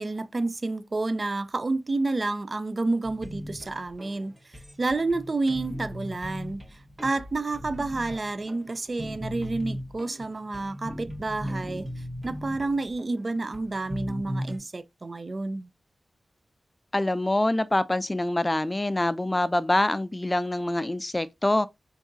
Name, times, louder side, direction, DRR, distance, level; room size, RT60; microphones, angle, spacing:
voice 1, 0.0-4.3 4.8-6.6 7.0-11.9 12.2-15.7, right 2 dB, 50° right, 0.5 m, -29 dB
sound 1, 3.0-14.6, equal, 20° right, 1.7 m, -38 dB
voice 2, 16.9-21.7, left 1 dB, 25° left, 0.4 m, -25 dB
3.9 x 3.6 x 2.6 m
cardioid pair, 45°, 0 cm